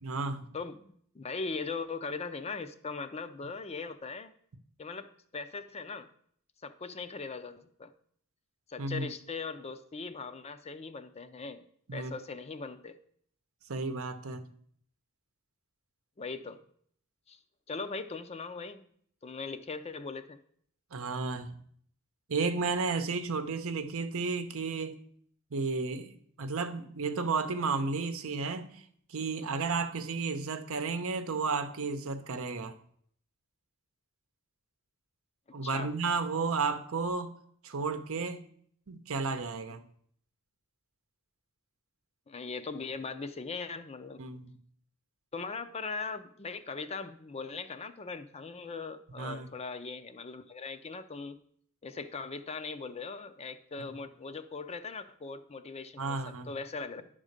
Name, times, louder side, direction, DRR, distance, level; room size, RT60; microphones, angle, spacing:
voice 1, 0.0-0.4 8.8-9.1 11.9-12.1 13.7-14.5 20.9-21.5 22.3-25.0 25.5-26.1 26.4-28.8 29.1-32.8 35.5-37.3 37.6-38.4 38.9-39.8 44.2-44.5 49.2-49.5 53.8-53.9 56.0-56.5, right 4 dB, 65° right, 9 dB, 0.8 m, -33 dB
voice 2, 0.5-4.3 4.8-6.1 6.6-7.9 8.7-11.6 11.9-13.0 16.2-16.6 17.3-17.4 17.7-18.8 19.2-20.4 35.6-35.9 42.3-44.2 45.3-51.4 51.8-57.0, left 4 dB, 30° left, 10 dB, 0.5 m, -40 dB
11.0 x 3.7 x 6.5 m, 0.63 s
head